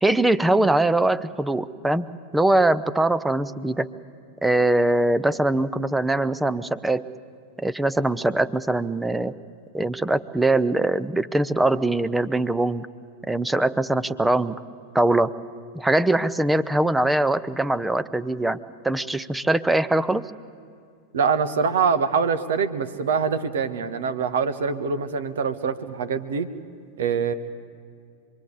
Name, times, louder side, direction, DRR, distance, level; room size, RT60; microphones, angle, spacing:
voice 1, 0.0-2.1 2.3-3.9 4.4-7.0 7.6-9.3 9.7-12.9 13.3-14.6 14.9-15.3 15.7-18.6 18.8-20.3, right 2 dB, 5° right, 16 dB, 0.7 m, -22 dB
voice 2, 21.1-26.5 27.0-27.3, right 6 dB, 60° right, 11 dB, 1.4 m, -24 dB
26.5 x 22.5 x 8.5 m, 2.4 s
figure-of-eight pair, 90°, 0 cm